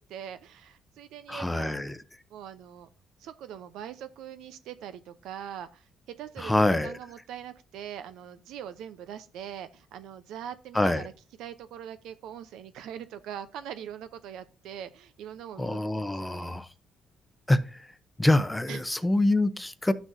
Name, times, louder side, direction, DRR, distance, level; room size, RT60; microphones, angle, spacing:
voice 1, 0.0-1.8 2.3-2.9 3.2-5.8 6.2-11.1 11.4-16.5 18.7-18.8, right 9 dB, 85° right, 0.7 m, -42 dB
voice 2, 1.3-2.0 6.4-6.9 10.7-11.1 15.6-16.7 17.5-17.6 18.2-19.9, left 1 dB, 10° left, 0.7 m, -25 dB
12.5 x 6.1 x 2.7 m
cardioid pair, 90°, 0 cm